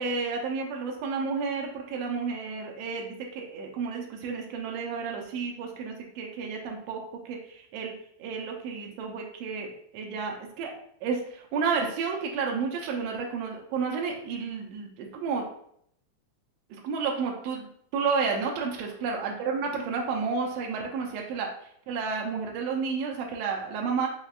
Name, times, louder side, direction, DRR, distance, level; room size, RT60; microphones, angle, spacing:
voice 1, 0.0-7.0 7.2-7.9 8.2-10.7 11.0-15.4 16.8-21.5 21.9-24.1, right 5 dB, 80° right, 0 dB, 1.5 m, -31 dB
5.2 x 3.6 x 2.4 m, 0.67 s
omnidirectional pair, 3.8 m